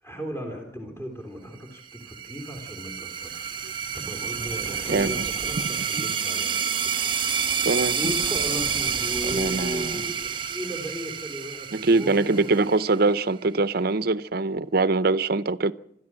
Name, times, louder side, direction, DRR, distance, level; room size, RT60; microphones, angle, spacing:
voice 1, 0.0-12.5, equal, 15° left, 3.5 m, -36 dB
sound 1, 1.9-13.2, right 7 dB, 30° right, 1.3 m, -29 dB
sound 2, 3.1-10.5, right 1 dB, 5° right, 1.4 m, -43 dB
voice 2, 4.9-5.3 5.7-6.1 7.6-8.0 9.2-10.0 11.7-15.7, right 3 dB, 55° right, 0.7 m, -23 dB
Bicycle bell, 5.2-5.9 7.1-7.7 9.0-9.7, left 5 dB, 80° left, 2.7 m, -47 dB
25.5 x 14.0 x 7.6 m
head